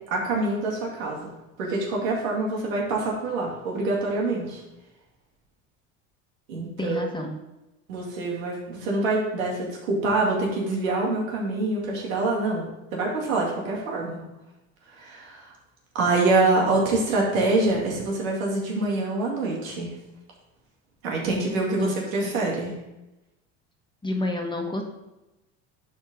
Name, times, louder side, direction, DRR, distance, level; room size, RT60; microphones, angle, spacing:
voice 1, 0.1-1.3 1.6-4.6 6.5-7.1 7.9-12.7 12.9-14.2 14.9-15.5 15.9-19.9 21.0-22.7, right 2 dB, 90° right, -2 dB, 2.5 m, -25 dB
voice 2, 6.8-7.4 21.7-21.9 22.2-22.3 24.0-24.8, left 2 dB, 10° left, 2 dB, 1.5 m, -29 dB
11.0 x 4.3 x 3.7 m, 0.96 s
supercardioid pair, 90°, 39 cm